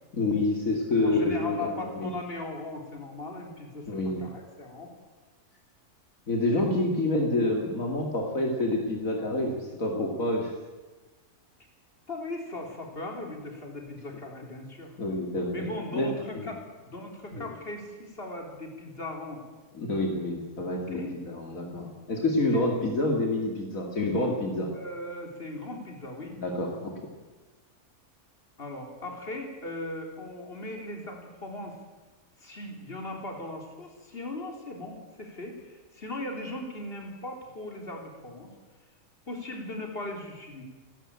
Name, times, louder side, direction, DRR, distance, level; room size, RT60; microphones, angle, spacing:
voice 1, 0.1-2.1 3.9-4.3 6.3-10.5 15.0-16.5 17.3-17.5 19.7-24.7 26.3-26.9, left 2 dB, 65° left, 1 dB, 2.8 m, -28 dB
voice 2, 1.0-4.9 6.5-6.7 12.1-14.9 15.5-19.4 20.6-21.1 22.5-22.6 24.7-26.4 28.6-31.8 32.4-38.5 39.3-40.6, left 2 dB, 40° left, 2 dB, 3.9 m, -38 dB
28.5 x 12.5 x 8.8 m, 1.3 s
omnidirectional pair, 1.5 m